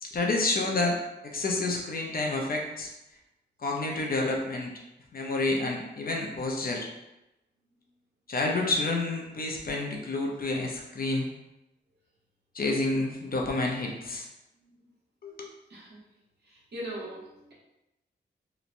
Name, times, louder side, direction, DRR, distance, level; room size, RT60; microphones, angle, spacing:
voice 1, 0.0-2.9 3.6-4.7 5.1-6.9 8.3-11.3 12.5-14.3 15.2-15.5, left 2 dB, 50° left, 0 dB, 0.5 m, -29 dB
voice 2, 16.4-17.5, right 1 dB, 60° right, -7 dB, 1.1 m, -40 dB
2.9 x 2.1 x 2.5 m, 0.93 s
wide cardioid pair, 95°, 19 cm